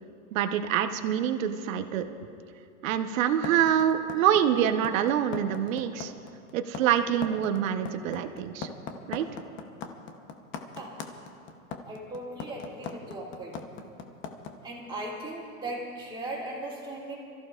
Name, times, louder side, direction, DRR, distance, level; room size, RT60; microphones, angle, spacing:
voice 1, 0.3-2.0 2.8-6.1 6.5-8.7 9.1-9.3, right 9 dB, 65° right, 7 dB, 1.1 m, -26 dB
sound 1, 3.4-14.5, left 6 dB, 25° left, 0.9 m, -38 dB
voice 2, 11.8-13.6 14.6-17.2, right 1 dB, 10° right, -4 dB, 2.9 m, -38 dB
27.5 x 14.5 x 2.5 m, 2.5 s
supercardioid pair, 145°, 43 cm